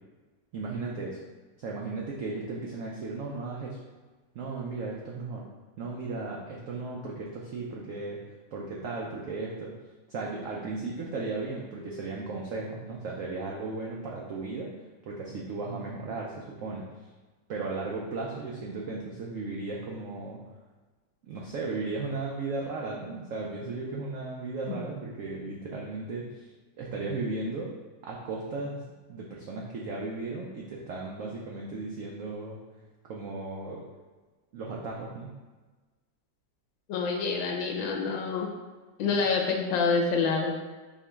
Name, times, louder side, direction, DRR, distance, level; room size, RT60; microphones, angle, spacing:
voice 1, 0.5-1.2 1.6-3.8 4.3-5.4 5.8-8.2 8.5-9.7 10.1-14.7 15.1-16.9 17.5-20.4 21.2-26.5 26.8-27.7 28.0-28.8 29.1-32.6 33.1-33.8 34.5-35.3 39.1-39.2, right 3 dB, 85° right, -2 dB, 0.7 m, -35 dB
voice 2, 36.9-38.5 39.0-40.6, left 4 dB, 90° left, 1 dB, 1.3 m, -27 dB
4.5 x 3.0 x 3.4 m, 1.3 s
omnidirectional pair, 2.0 m